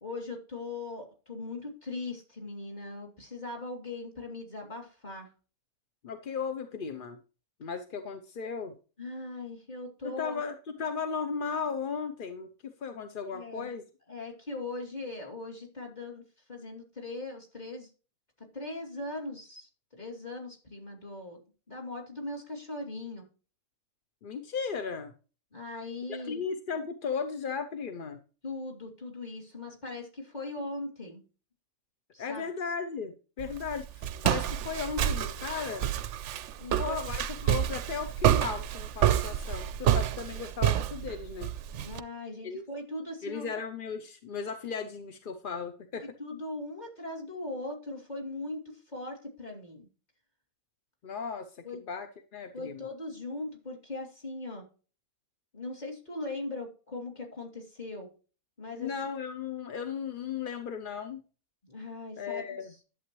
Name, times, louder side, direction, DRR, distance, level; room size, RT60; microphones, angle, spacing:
voice 1, 0.0-5.3 9.0-10.4 13.3-13.7 14.1-16.2 16.5-17.9 18.4-21.4 21.7-23.2 25.5-26.4 28.4-31.2 32.1-32.5 36.6-37.0 41.8-43.5 46.0-49.9 51.6-51.8 52.5-54.6 55.5-58.1 58.6-58.9 61.6-62.4, left 2 dB, 30° left, 1 dB, 2.9 m, -39 dB
voice 2, 6.0-7.2 7.6-8.7 10.0-13.8 24.2-25.1 26.1-28.2 32.2-35.9 36.8-41.5 42.4-42.6 43.2-46.0 51.0-52.9 58.7-61.2 62.2-62.7, left 6 dB, 45° left, 8 dB, 0.8 m, -36 dB
Walk footsteps, 33.4-42.0, right 11 dB, 65° right, 0.8 m, -28 dB
11.0 x 7.8 x 3.1 m, 0.35 s
omnidirectional pair, 1.5 m